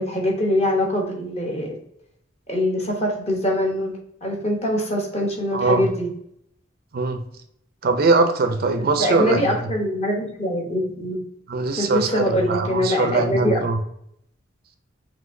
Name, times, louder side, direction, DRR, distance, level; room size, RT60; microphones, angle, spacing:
voice 1, 0.0-1.8 2.5-3.9 4.2-6.1 9.0-11.2 11.8-13.6, left 1 dB, 35° left, 0 dB, 1.0 m, -23 dB
voice 2, 5.5-5.9 6.9-7.2 7.8-9.6 11.5-13.8, right 3 dB, 50° right, 7 dB, 0.5 m, -21 dB
5.7 x 2.8 x 2.6 m, 0.72 s
head